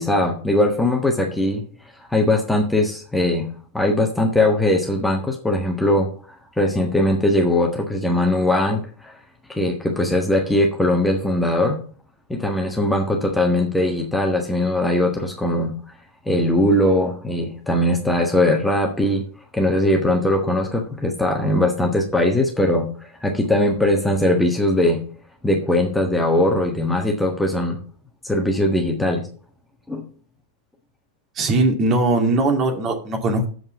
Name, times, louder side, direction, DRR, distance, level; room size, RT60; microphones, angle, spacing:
voice 1, 0.0-1.6 2.1-3.5 3.7-6.1 6.6-9.1 9.5-11.8 12.3-15.7 16.3-19.2 19.5-22.9 23.2-25.0 25.4-27.8 28.2-29.2 29.9-30.0, left 1 dB, 5° left, 1 dB, 1.5 m, -20 dB
voice 2, 31.3-33.5, right 2 dB, 30° right, 3 dB, 2.2 m, -20 dB
7.8 x 5.3 x 7.2 m, 0.42 s
figure-of-eight pair, 90°, 0 cm